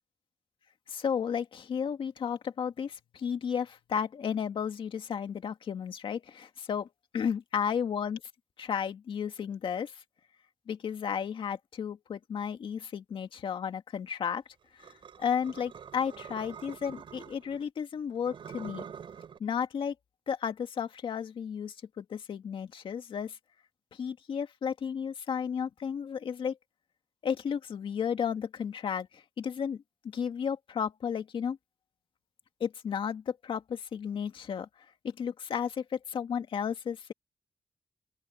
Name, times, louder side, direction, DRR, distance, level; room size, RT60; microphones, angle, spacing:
voice 1, 0.9-6.9 7.1-8.2 8.6-10.0 10.7-14.4 14.8-14.9 15.2-18.9 19.4-19.9 20.3-23.4 23.9-26.6 27.2-31.6 32.6-34.7 35.0-37.1, left 7 dB, 75° left, 2.1 m, -33 dB
sound 1, 14.8-17.6 18.2-19.4, right 7 dB, 70° right, 7.2 m, -46 dB
open air
wide cardioid pair, 130°, 9 cm